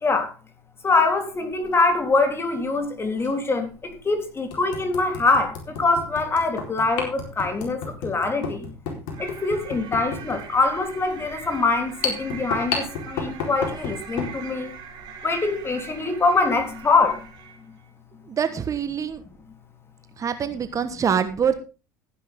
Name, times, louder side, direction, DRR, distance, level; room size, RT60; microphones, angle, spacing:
voice 1, 0.8-8.6 9.2-14.7 15.2-17.2, left 3 dB, 25° left, 3.6 m, -23 dB
sound 1, 1.5-1.7 3.2-3.3 3.9-4.0 4.5-14.4, left 5 dB, 60° left, 4.3 m, -32 dB
sound 2, 9.1-17.7, right 7 dB, 50° right, 4.1 m, -42 dB
voice 2, 18.3-19.2 20.2-21.5, right 7 dB, 35° right, 1.3 m, -25 dB
14.5 x 10.0 x 3.7 m
hypercardioid pair, 65°, 10 cm